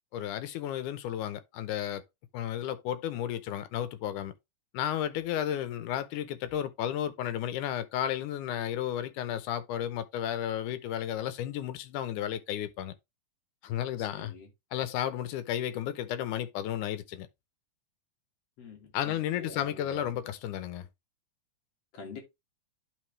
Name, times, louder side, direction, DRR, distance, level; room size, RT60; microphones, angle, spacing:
voice 1, 0.1-2.0 2.3-4.3 4.7-12.9 13.6-14.3 14.7-17.3 18.9-20.9, left 10 dB, 85° left, 2.3 m, -33 dB
voice 2, 14.0-14.5 18.6-20.2 21.9-22.2, left 3 dB, 55° left, 2.8 m, -46 dB
11.0 x 4.0 x 3.1 m
omnidirectional pair, 3.5 m